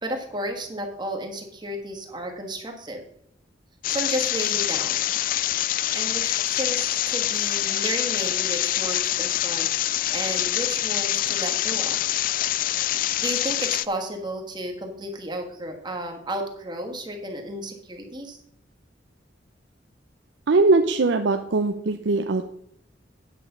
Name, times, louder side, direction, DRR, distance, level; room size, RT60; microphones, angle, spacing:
voice 1, 0.0-3.0 3.9-5.1 5.9-12.0 13.2-18.4, right 1 dB, 25° right, 3 dB, 1.5 m, -33 dB
sound 1, 3.8-13.8, left 13 dB, 50° left, 0.3 m, -25 dB
voice 2, 20.5-22.5, right 3 dB, 80° right, 6 dB, 0.6 m, -21 dB
9.5 x 5.2 x 6.7 m, 0.74 s
head